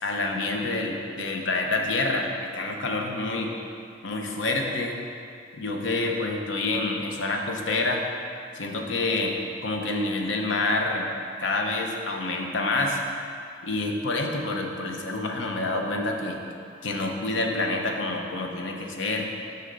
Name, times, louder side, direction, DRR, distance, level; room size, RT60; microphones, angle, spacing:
voice 1, 0.0-3.5 4.0-5.0 5.5-8.0 8.5-9.4 9.6-11.1 11.4-13.0 13.6-16.4 16.8-19.3, left 2 dB, 85° left, 2 dB, 0.7 m, -27 dB
6.4 x 5.7 x 3.9 m, 2.4 s
head